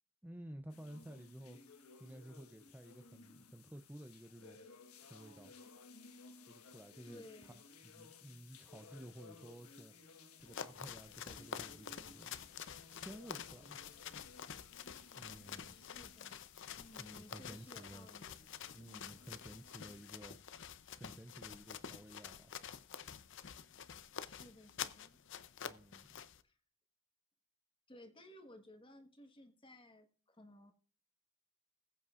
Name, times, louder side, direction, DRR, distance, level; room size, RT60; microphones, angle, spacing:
voice 1, 0.2-1.6 2.0-4.6 5.0-5.5 6.5-7.5 7.8-9.9 10.4-13.8 15.2-15.8 17.0-18.1 18.7-20.4 20.9-22.5 25.6-26.2, right 1 dB, 10° right, 0.5 m, -53 dB
sound 1, 0.7-20.2, left 4 dB, 85° left, 1.4 m, -60 dB
voice 2, 7.0-7.7 15.7-16.5 16.8-18.5 18.8-19.3 24.2-25.2 26.4-26.6 27.9-30.7, left 1 dB, 25° left, 1.4 m, -58 dB
sound 2, 10.4-26.4, left 8 dB, 55° left, 0.6 m, -49 dB
20.5 x 8.3 x 2.5 m
head